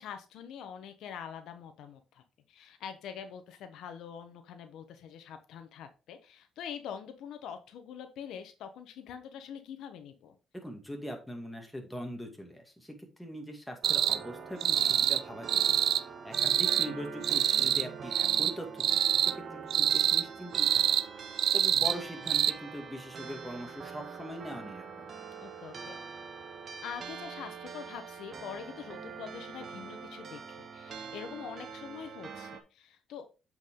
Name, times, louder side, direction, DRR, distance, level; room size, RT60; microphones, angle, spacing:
voice 1, 0.0-10.3 17.5-17.6 25.4-26.0 26.8-33.3, left 8 dB, 85° left, 8 dB, 1.0 m, -44 dB
voice 2, 10.5-15.8 16.2-21.0 21.3-25.1, equal, 5° left, 2 dB, 2.1 m, -42 dB
sound 1, 13.8-32.6, right 5 dB, 50° right, 1.1 m, -44 dB
sound 2, 13.8-14.2 14.6-15.2 15.5-16.0 16.3-16.9 17.2-17.9 18.1-18.5 18.8-19.3 19.7-20.2 20.5-21.0 21.4-22.0 22.3-22.5, right 10 dB, 70° right, 0.3 m, -26 dB
7.7 x 4.7 x 3.8 m, 0.31 s
cardioid pair, 90°, 0 cm